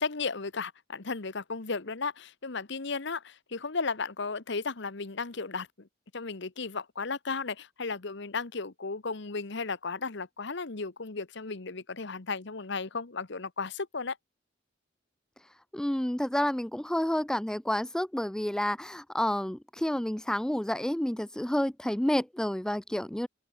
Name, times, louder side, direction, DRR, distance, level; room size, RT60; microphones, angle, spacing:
voice 1, 0.0-5.9 6.1-14.2, left 4 dB, 65° left, 1.2 m, -35 dB
voice 2, 15.7-23.3, left 1 dB, 5° left, 0.3 m, -29 dB
head